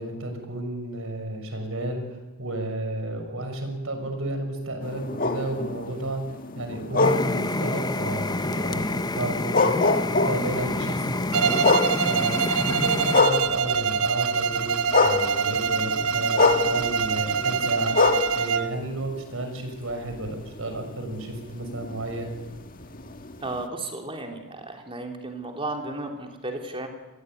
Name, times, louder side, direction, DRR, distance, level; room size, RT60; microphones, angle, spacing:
voice 1, 0.0-6.3 6.5-14.8 15.0-18.0 18.3-22.3, right 1 dB, 65° right, 6 dB, 6.5 m, -32 dB
sound 1, 4.8-14.0 14.4-19.6 20.1-23.6, left 3 dB, 40° left, 1.7 m, -26 dB
sound 2, 7.0-13.2, left 2 dB, 20° left, 0.8 m, -28 dB
Bowed string instrument, 11.3-18.8, right 6 dB, 90° right, 1.1 m, -25 dB
voice 2, 23.4-26.9, right 2 dB, 25° right, 3 dB, 3.6 m, -34 dB
26.5 x 21.5 x 9.5 m, 1.1 s
head